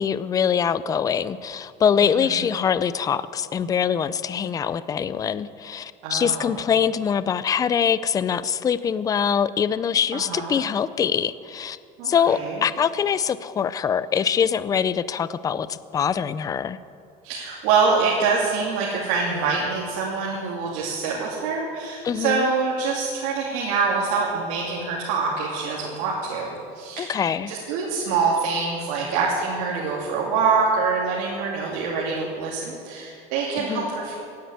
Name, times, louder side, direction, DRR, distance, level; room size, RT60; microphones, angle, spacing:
voice 1, 0.0-11.8 12.0-16.8 22.0-22.5 27.0-27.5 33.6-33.9, left 7 dB, 20° left, 16 dB, 0.4 m, -23 dB
voice 2, 2.0-2.5 6.0-6.6 10.1-10.6 12.0-12.6 17.2-26.5 26.7-27.2 27.5-34.1, right 5 dB, 80° right, -4 dB, 2.8 m, -25 dB
17.0 x 10.5 x 8.1 m, 2.4 s
cardioid pair, 150°, 18 cm